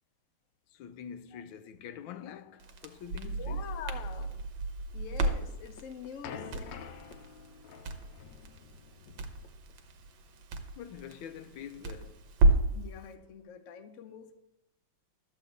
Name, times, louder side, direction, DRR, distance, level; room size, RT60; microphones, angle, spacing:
voice 1, 0.7-3.7 7.7-7.8 8.1-8.3 10.8-12.3, left 8 dB, 90° left, 1.4 m, -46 dB
Crackle, 2.6-12.8, right 2 dB, 75° right, 1.6 m, -32 dB
voice 2, 3.2-4.4 4.9-6.8 12.7-14.3, left 8 dB, 55° left, 0.9 m, -45 dB
sound 1, 5.5-10.4, left 7 dB, 70° left, 1.3 m, -48 dB
12.5 x 4.1 x 8.0 m
omnidirectional pair, 2.1 m